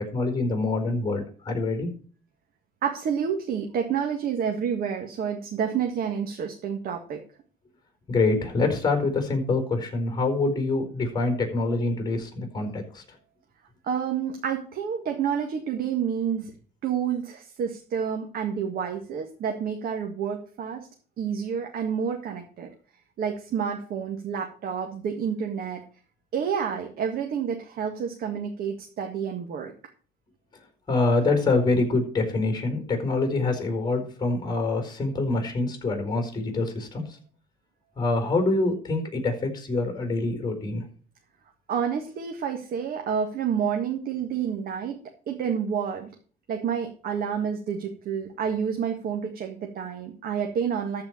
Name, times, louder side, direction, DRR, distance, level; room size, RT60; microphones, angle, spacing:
voice 1, 0.1-1.9 8.1-13.0 30.9-37.0 38.0-40.8, left 3 dB, 25° left, 5 dB, 4.5 m, -25 dB
voice 2, 2.8-7.2 13.8-16.5 16.8-20.9 21.2-22.7 23.2-25.8 26.3-29.7 41.7-46.1 46.5-51.0, right 7 dB, 60° right, 3 dB, 1.8 m, -29 dB
14.0 x 4.8 x 7.3 m, 0.42 s
cardioid pair, 110°, 17 cm